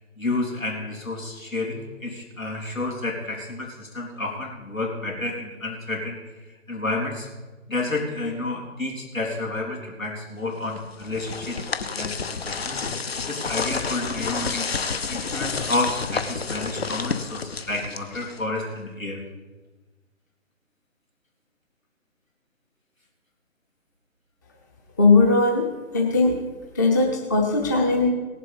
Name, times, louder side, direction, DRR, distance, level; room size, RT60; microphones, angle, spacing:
voice 1, 0.2-6.2 6.7-7.3 7.7-12.9 13.3-14.7 15.1-19.2, left 2 dB, 85° left, -1 dB, 3.7 m, -30 dB
sound 1, 10.8-18.6, left 5 dB, 50° left, 0.8 m, -30 dB
voice 2, 25.0-25.7 25.9-26.3 26.7-28.1, left 3 dB, 15° left, 0 dB, 0.7 m, -19 dB
17.5 x 7.6 x 5.3 m, 1.2 s
figure-of-eight pair, 145°, 39 cm